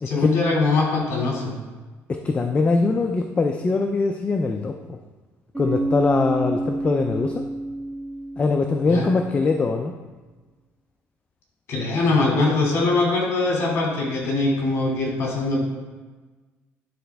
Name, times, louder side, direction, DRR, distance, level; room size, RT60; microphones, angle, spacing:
voice 1, 0.0-1.5 8.9-9.1 11.7-15.6, left 3 dB, 55° left, -2 dB, 2.4 m, -22 dB
voice 2, 2.1-5.0 5.6-7.4 8.4-9.9, left 3 dB, 25° left, 5 dB, 0.4 m, -22 dB
Bass guitar, 5.5-9.4, right 2 dB, 15° right, 2.3 m, -28 dB
10.5 x 4.2 x 3.4 m, 1.3 s
cardioid pair, 125°, 5 cm